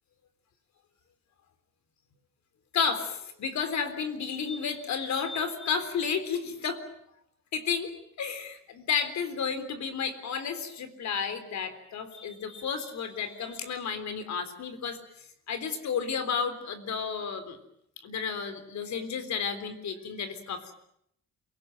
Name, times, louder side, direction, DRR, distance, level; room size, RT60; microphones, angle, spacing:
voice 1, 2.7-6.8 7.5-7.9 8.2-15.0 15.5-17.6 18.0-20.7, left 6 dB, 65° left, 10 dB, 3.9 m, -32 dB
28.0 x 18.5 x 9.3 m, 0.73 s
cardioid pair, 90°, 30 cm